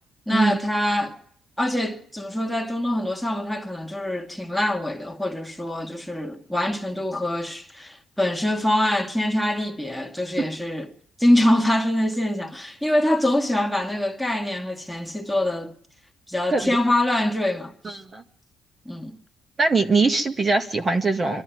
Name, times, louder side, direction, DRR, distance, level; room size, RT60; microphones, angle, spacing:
voice 1, 0.3-1.2 1.6-10.9 11.2-15.7 16.3-17.7 18.9-19.2, left 1 dB, ahead, 2.1 m, -24 dB
voice 2, 17.8-18.2 19.6-21.4, right 3 dB, 35° right, 1.9 m, -22 dB
24.0 x 13.5 x 9.4 m
cardioid pair, 90°, 0 cm